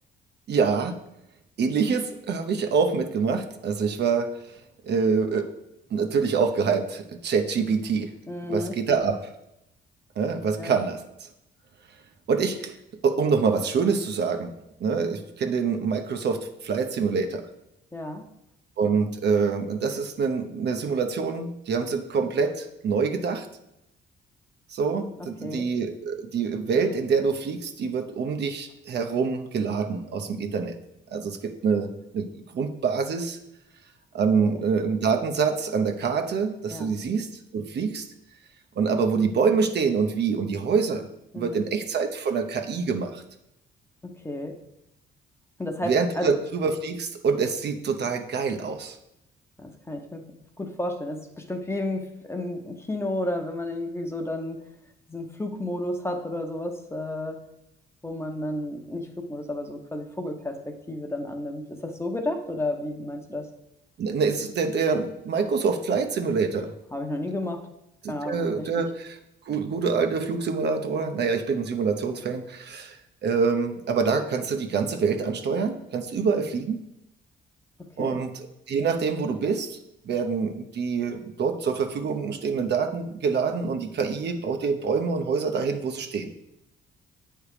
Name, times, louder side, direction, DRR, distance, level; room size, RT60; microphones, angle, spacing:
voice 1, 0.5-1.0 1.6-4.6 4.9-5.4 5.9-8.1 8.5-9.3 10.2-11.3 12.3-12.7 13.0-14.5 14.8-17.4 18.8-23.5 24.7-30.8 31.1-33.4 34.1-38.1 38.8-41.1 41.3-43.2 45.8-49.0 64.0-66.7 68.0-69.2 69.5-76.8 78.0-79.8 80.0-86.3, right 5 dB, 60° right, 6 dB, 0.8 m, -26 dB
voice 2, 8.3-8.8 10.6-10.7 17.9-18.2 25.2-25.7 34.4-34.6 36.7-37.0 41.3-41.7 44.0-44.5 45.6-46.3 49.6-50.2 50.6-54.6 55.1-57.4 58.0-63.5 66.9-67.7 68.1-68.7 78.0-78.2, left 1 dB, 15° left, 4 dB, 0.8 m, -32 dB
8.5 x 3.4 x 4.9 m, 0.84 s
cardioid pair, 90°, 20 cm